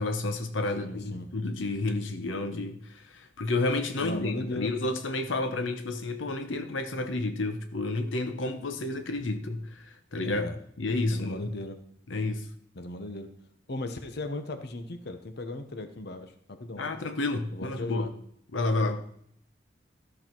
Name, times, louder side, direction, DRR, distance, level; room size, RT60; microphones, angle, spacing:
voice 1, 0.0-11.5 12.1-12.5 16.8-18.1 18.5-19.0, left 2 dB, 90° left, 0.9 m, -30 dB
voice 2, 0.8-1.3 4.0-4.7 10.2-10.6 11.1-11.8 12.7-13.3 13.7-16.8 17.5-18.1 18.8-19.0, left 2 dB, 60° left, 1.0 m, -37 dB
13.0 x 6.4 x 4.5 m
head